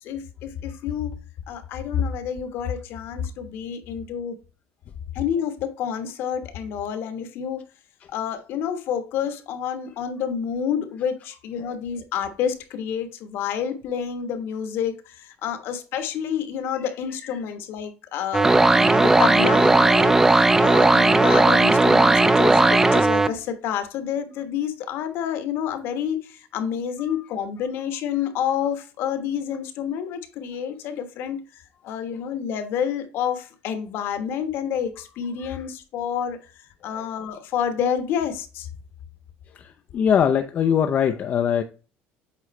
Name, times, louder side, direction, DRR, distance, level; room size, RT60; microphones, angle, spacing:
voice 1, 0.0-1.1 1.5-4.4 5.1-7.6 8.1-31.4 31.8-36.4 36.8-38.7, left 8 dB, 60° left, 1.2 m, -29 dB
sound 1, 18.3-23.3, right 2 dB, 10° right, 0.5 m, -16 dB
voice 2, 39.5-41.6, left 8 dB, 40° left, 0.5 m, -22 dB
8.0 x 3.8 x 3.2 m
cardioid pair, 135°, 4 cm